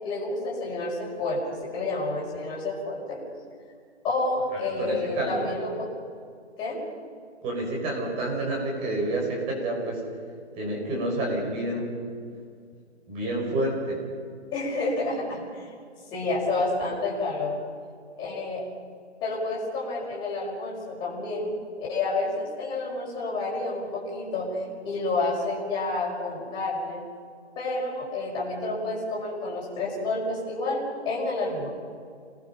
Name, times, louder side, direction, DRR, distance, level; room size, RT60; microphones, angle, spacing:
voice 1, 0.0-3.2 4.0-5.9 6.6-6.8 14.5-15.7 16.1-17.6 18.2-18.7 19.2-21.5 21.8-24.6 24.8-27.0 27.6-31.7, left 2 dB, 15° left, -5 dB, 5.7 m, -29 dB
voice 2, 4.8-5.5 7.4-10.0 10.5-11.9 13.1-14.0, right 1 dB, 15° right, -1 dB, 5.7 m, -29 dB
28.0 x 20.0 x 5.8 m, 2.2 s
hypercardioid pair, 155°, 35 cm